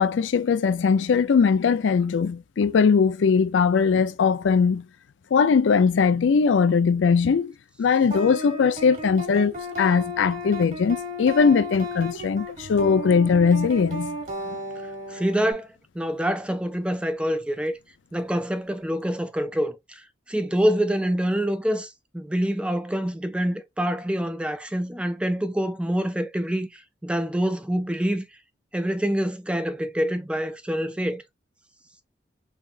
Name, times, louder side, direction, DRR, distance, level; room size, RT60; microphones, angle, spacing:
voice 1, 0.0-4.9 5.3-7.5 7.8-9.5 9.8-14.2, left 5 dB, 85° left, 0.4 m, -20 dB
sound 1, 8.1-15.5, equal, 40° right, 1.5 m, -34 dB
voice 2, 15.1-15.7 15.9-17.8 18.1-20.0 20.3-28.2 28.7-31.2, equal, 5° right, 0.4 m, -26 dB
3.5 x 3.2 x 2.3 m
head